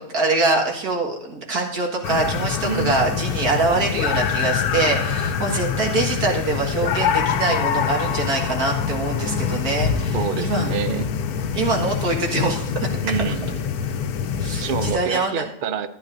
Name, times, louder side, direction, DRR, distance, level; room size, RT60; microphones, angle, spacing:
voice 1, 0.0-10.7 11.5-12.9 14.4-15.5, right 3 dB, 75° right, 0 dB, 2.3 m, -24 dB
sound 1, 2.0-14.9, left 7 dB, 80° left, 1.1 m, -25 dB
voice 2, 2.6-3.2 10.1-11.1 13.0-13.6 14.6-15.9, right 6 dB, 55° right, 11 dB, 0.5 m, -27 dB
14.5 x 9.7 x 2.6 m, 0.77 s
omnidirectional pair, 1.6 m